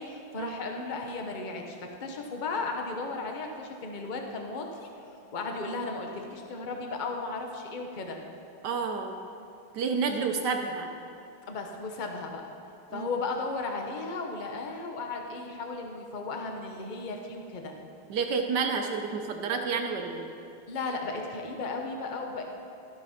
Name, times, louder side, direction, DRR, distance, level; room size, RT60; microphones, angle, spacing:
voice 1, 0.0-4.9 5.3-8.2 11.5-12.5 12.9-17.7 20.7-22.4, left 3 dB, 65° left, 3 dB, 0.4 m, -35 dB
voice 2, 8.6-9.3 9.7-10.9 12.9-13.1 18.1-20.3, right 5 dB, 65° right, 4 dB, 1.2 m, -30 dB
13.5 x 6.3 x 5.6 m, 2.6 s
omnidirectional pair, 2.2 m